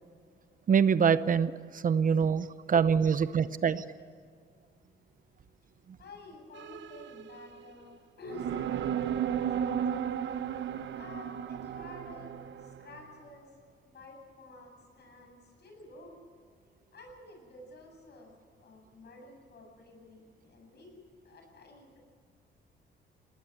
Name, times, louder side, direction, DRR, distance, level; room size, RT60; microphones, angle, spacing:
voice 1, 0.7-3.8, right 7 dB, 45° right, 14 dB, 0.8 m, -25 dB
voice 2, 6.0-10.1 10.9-16.2 16.9-22.0, left 2 dB, 55° left, 2 dB, 7.9 m, -51 dB
sound 1, 6.5-7.7 8.3-13.0, right 9 dB, 70° right, 1.1 m, -34 dB
19.5 x 19.0 x 8.1 m, 2.1 s
cardioid pair, 90°, 20 cm